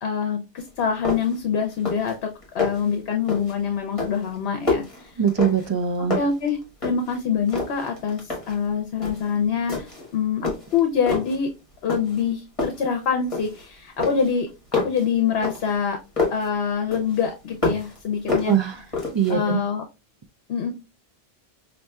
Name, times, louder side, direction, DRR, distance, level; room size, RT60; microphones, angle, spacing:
voice 1, 0.0-5.1 6.2-6.6 6.8-11.5 11.8-16.0 16.3-18.5 19.3-19.8 20.5-20.7, left 6 dB, 70° left, 0.9 m, -25 dB
sound 1, 0.6-0.7 1.0-1.4 1.7-2.2 2.4-2.9 3.3-3.6 4.0-5.8 6.1-7.2 7.5-8.6 9.0-9.3 9.7-10.1 10.4-11.4 11.9-12.3 12.6-13.7 14.0-16.5 16.9-18.0 18.3-19.3, left 3 dB, 30° left, 1.5 m, -28 dB
voice 2, 5.2-6.2 18.5-18.8 19.1-19.6, right 8 dB, 50° right, 0.3 m, -22 dB
5.3 x 2.7 x 2.2 m
omnidirectional pair, 1.1 m